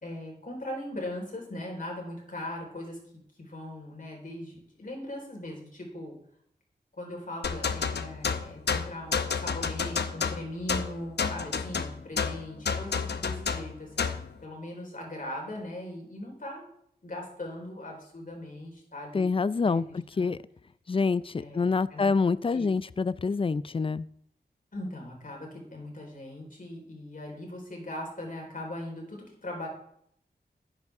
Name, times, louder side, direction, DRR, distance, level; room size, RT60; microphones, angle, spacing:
voice 1, 0.0-3.0 3.4-6.2 6.9-16.7 17.0-19.3 19.6-20.3 21.4-21.6 21.9-22.1 22.5-22.7 24.7-29.7, left 1 dB, 55° left, 0 dB, 4.2 m, -39 dB
sound 1, 7.4-14.3, left 5 dB, 85° left, 0.8 m, -30 dB
voice 2, 19.1-20.4 20.9-24.0, left 4 dB, 30° left, 18 dB, 0.4 m, -26 dB
13.0 x 9.7 x 3.6 m, 0.69 s
wide cardioid pair, 80°, 17 cm